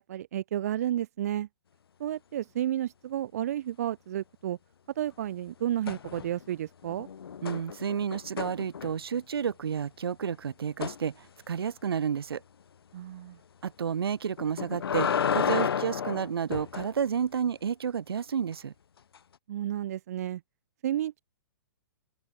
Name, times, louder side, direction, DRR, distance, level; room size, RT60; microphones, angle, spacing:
voice 1, 0.0-1.5 2.0-4.6 5.0-7.1 12.9-13.4 19.5-20.4 20.8-21.2, right 11 dB, 40° right, 0.8 m, -32 dB
sound 1, 5.9-6.5 6.8-9.2 10.8-11.0 14.4-16.9 19.1-19.2, left 7 dB, 80° left, 2.2 m, -31 dB
voice 2, 7.4-12.4 13.6-18.7, right 7 dB, 80° right, 3.2 m, -31 dB
open air
hypercardioid pair, 175°, 13 cm